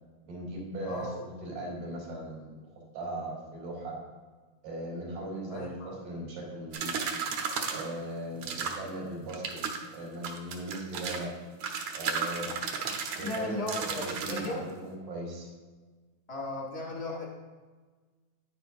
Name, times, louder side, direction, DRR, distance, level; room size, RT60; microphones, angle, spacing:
voice 1, 0.3-2.7 2.9-4.0 4.6-7.0 7.7-11.3 11.9-12.6 13.2-15.5, right 1 dB, 90° right, -3 dB, 4.4 m, -38 dB
voice 2, 0.8-1.6 5.5-5.9 13.2-14.6 16.3-17.3, left 2 dB, 35° left, -2 dB, 1.1 m, -36 dB
sound 1, 6.7-7.9 8.4-8.9 9.3-9.8 10.2-11.2 11.6-14.5, right 6 dB, 70° right, 1.9 m, -34 dB
9.8 x 9.5 x 2.6 m, 1.4 s
omnidirectional pair, 3.4 m